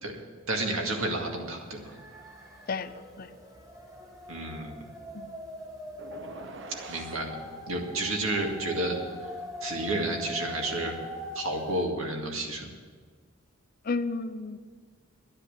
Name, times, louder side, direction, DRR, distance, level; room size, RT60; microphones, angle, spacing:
voice 1, 0.5-1.9 4.3-4.8 6.9-7.4 7.7-9.0 9.6-10.9 11.3-12.7, right 2 dB, 75° right, 2 dB, 2.1 m, -31 dB
sound 1, 1.3-1.4 1.6-11.9, left 1 dB, 15° right, 2.2 m, -42 dB
voice 2, 2.7-3.3 5.1-5.3 13.9-14.6, left 4 dB, 45° left, 12 dB, 0.6 m, -32 dB
sound 2, 6.0-7.2, right 2 dB, 60° right, 0.9 m, -44 dB
10.5 x 9.9 x 8.8 m, 1.5 s
head